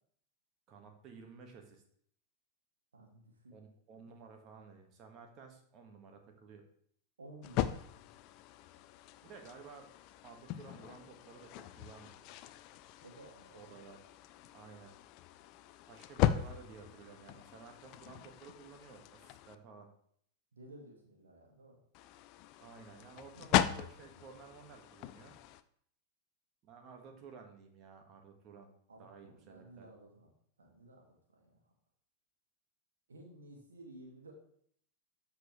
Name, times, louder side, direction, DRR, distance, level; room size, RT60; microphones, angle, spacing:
voice 1, 0.7-1.8 3.5-6.6 9.2-9.9 10.2-12.3 13.6-14.0 14.5-14.9 15.9-19.9 22.6-25.3 26.6-28.7 29.0-29.9, right 5 dB, 35° right, 4 dB, 1.7 m, -54 dB
voice 2, 2.9-3.6 7.2-7.9 13.0-13.6 20.5-21.8 23.3-23.4 28.9-30.3 30.6-31.6 33.1-34.3, right 1 dB, 70° right, 0 dB, 2.2 m, -55 dB
sound 1, 7.4-19.6 21.9-25.6, left 12 dB, 40° left, 0.5 m, -38 dB
13.0 x 4.8 x 3.2 m, 0.63 s
figure-of-eight pair, 90°, 0 cm